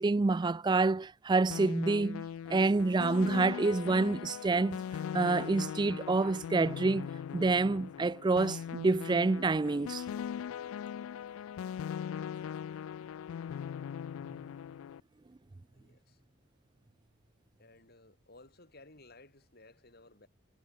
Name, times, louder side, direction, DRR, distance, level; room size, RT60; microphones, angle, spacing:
voice 1, 0.0-4.8 5.1-10.0, right 3 dB, 20° right, 0.3 m, -28 dB
sound 1, 1.5-15.0, left 8 dB, 80° left, 0.3 m, -40 dB
voice 2, 15.7-16.2 17.6-20.3, left 2 dB, 50° left, 4.6 m, -57 dB
head